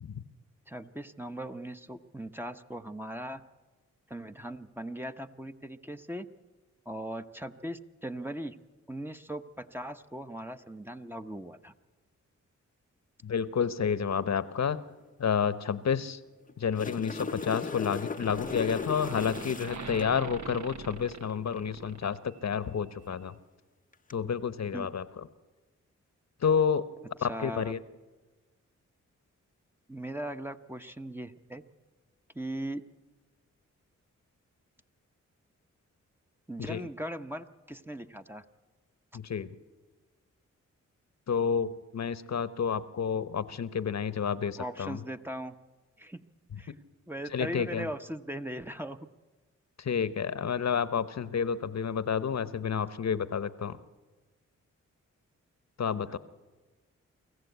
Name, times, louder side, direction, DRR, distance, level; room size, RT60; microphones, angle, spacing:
voice 1, 0.7-3.4 4.1-6.3 6.9-8.6 8.9-11.7 24.7-24.9 27.2-27.7 29.9-31.6 32.3-32.8 36.5-38.4 44.6-45.5 46.0-46.2 46.6-46.8 47.1-49.0 56.1-56.2, right 1 dB, 5° right, 7 dB, 1.0 m, -39 dB
voice 2, 13.2-14.8 15.2-16.2 16.6-23.4 24.1-25.2 26.4-26.9 27.2-27.8 36.6-36.8 39.1-39.5 41.3-45.0 46.7-46.8 47.3-47.9 49.8-53.8 55.8-56.2, left 7 dB, 55° left, 15 dB, 1.0 m, -30 dB
sound 1, 16.5-20.1 23.9-24.1, left 4 dB, 25° left, 0.7 m, -37 dB
sound 2, 17.4-17.9 18.1-22.6, right 5 dB, 60° right, 1.2 m, -43 dB
24.5 x 14.5 x 8.2 m, 1.3 s
supercardioid pair, 45°, 32 cm